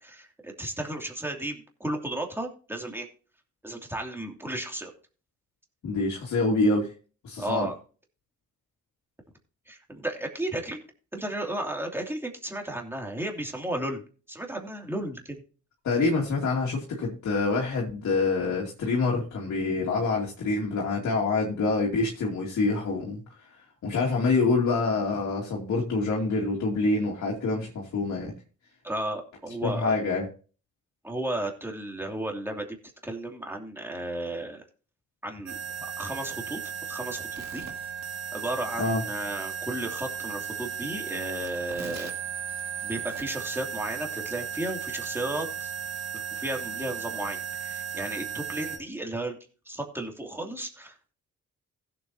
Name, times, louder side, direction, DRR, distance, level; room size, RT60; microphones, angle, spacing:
voice 1, 0.0-3.1 3.6-4.9 7.4-7.8 9.7-10.8 11.1-14.0 14.3-15.4 28.8-29.9 31.0-32.7 33.0-34.6 35.2-35.6 36.0-37.7 38.3-42.1 42.8-45.7 46.3-49.4 49.7-51.1, right 1 dB, 10° right, 2 dB, 2.7 m, -34 dB
voice 2, 5.8-6.9 7.2-7.7 15.8-23.2 23.8-28.3 29.6-30.3 38.8-39.0, left 3 dB, 65° left, -3 dB, 2.5 m, -26 dB
sound 1, 35.5-48.8, right 7 dB, 65° right, 2.2 m, -35 dB
16.0 x 7.7 x 2.8 m, 0.38 s
cardioid pair, 90°, 30 cm